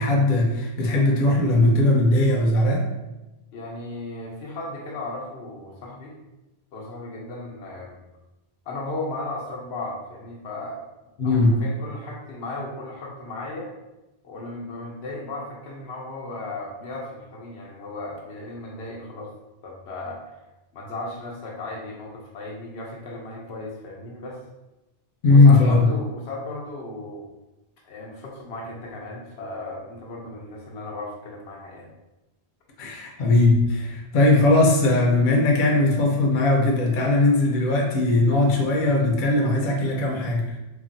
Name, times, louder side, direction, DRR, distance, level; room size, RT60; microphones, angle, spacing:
voice 1, 0.0-2.9 11.2-11.6 25.2-25.9 32.8-40.5, left 2 dB, 60° left, -1 dB, 0.7 m, -19 dB
voice 2, 3.5-6.1 6.7-8.0 8.7-10.8 11.2-13.7 14.2-19.3 19.6-20.3 20.7-24.4 25.3-27.2 27.8-31.9, left 2 dB, 85° left, -2 dB, 0.9 m, -35 dB
3.2 x 2.2 x 2.5 m, 1.0 s
omnidirectional pair, 1.0 m